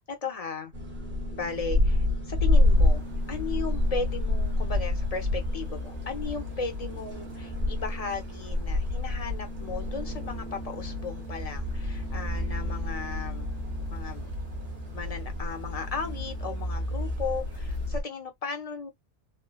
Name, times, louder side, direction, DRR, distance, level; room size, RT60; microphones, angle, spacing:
voice 1, 0.1-0.7 1.3-3.0 3.3-13.5 13.9-14.3 14.9-18.9, left 4 dB, 35° left, 0.8 m, -36 dB
sound 1, 0.7-18.0, left 1 dB, 35° right, 1.4 m, -29 dB
sound 2, 2.5-17.9, left 1 dB, 85° right, 1.4 m, -38 dB
3.7 x 2.1 x 2.3 m
omnidirectional pair, 1.2 m